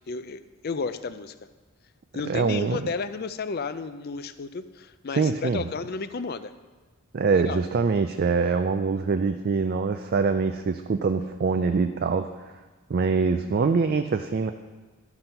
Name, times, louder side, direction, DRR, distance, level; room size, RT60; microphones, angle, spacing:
voice 1, 0.1-1.4 2.1-6.5 7.3-7.6, left 4 dB, 45° left, 12 dB, 0.4 m, -32 dB
voice 2, 2.3-2.9 5.1-5.6 7.1-12.3 12.9-14.5, right 4 dB, 45° right, 8 dB, 0.3 m, -24 dB
12.0 x 6.0 x 5.5 m, 1.3 s
head